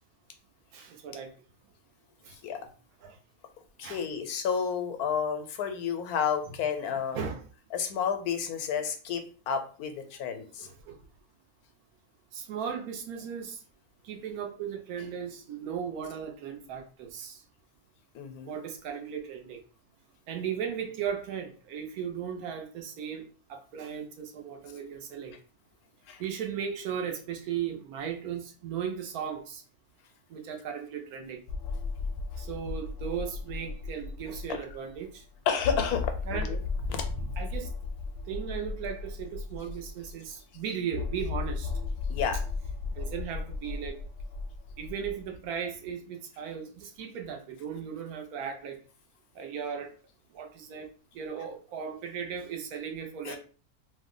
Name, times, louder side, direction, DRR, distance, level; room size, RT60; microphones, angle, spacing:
voice 1, 0.7-1.3 2.2-2.7 3.0-3.2 3.8-4.1 7.1-7.5 10.6-10.9 12.3-13.6 14.0-17.4 18.5-19.6 20.3-25.4 26.2-29.6 30.3-31.4 32.4-35.2 36.3-36.5 36.8-36.9 37.2-37.7 38.3-41.7 43.0-44.0 44.8-48.8 49.4-49.9 50.3-50.9 51.1-53.4, right 7 dB, 80° right, 4 dB, 1.1 m, -36 dB
voice 2, 3.8-7.2 7.7-10.7 18.1-18.5 26.1-26.2 34.5-34.6 35.5-36.6 36.9-37.0 42.1-42.4 53.2-53.4, left 7 dB, 85° left, 7 dB, 1.1 m, -31 dB
sound 1, 31.5-34.7 35.1-35.2 35.6-40.1 40.9-45.2, left 4 dB, 70° left, 0.8 m, -35 dB
2.9 x 2.1 x 3.7 m, 0.38 s
omnidirectional pair, 1.6 m